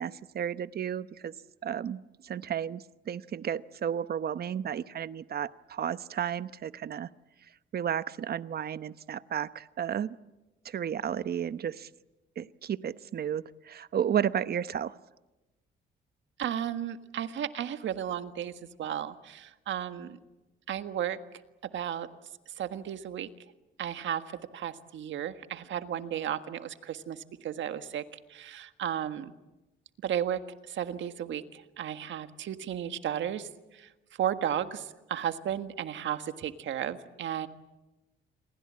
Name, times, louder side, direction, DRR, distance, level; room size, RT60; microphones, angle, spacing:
voice 1, 0.0-1.3 1.6-7.1 7.7-10.1 10.6-11.9 12.4-14.9, right 9 dB, 50° right, 15 dB, 0.9 m, -33 dB
voice 2, 16.4-18.5 18.8-20.2 20.7-21.2 21.6-22.1 22.5-23.3 23.8-24.2 24.5-29.3 30.0-33.9 34.2-37.5, right 10 dB, 70° right, 9 dB, 1.6 m, -34 dB
29.0 x 22.0 x 8.7 m, 1.1 s
cardioid pair, 90°, 20 cm